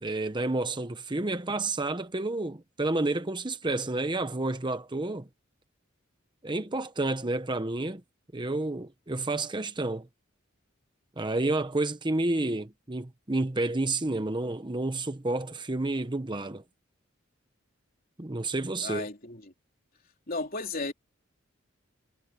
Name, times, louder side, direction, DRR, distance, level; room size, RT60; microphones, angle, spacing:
voice 1, 0.0-5.3 6.4-8.0 8.3-10.1 11.2-16.6 18.2-19.1, right 2 dB, 25° right, 0.9 m, -30 dB
voice 2, 18.8-19.5 20.3-20.9, left 3 dB, 45° left, 3.8 m, -34 dB
head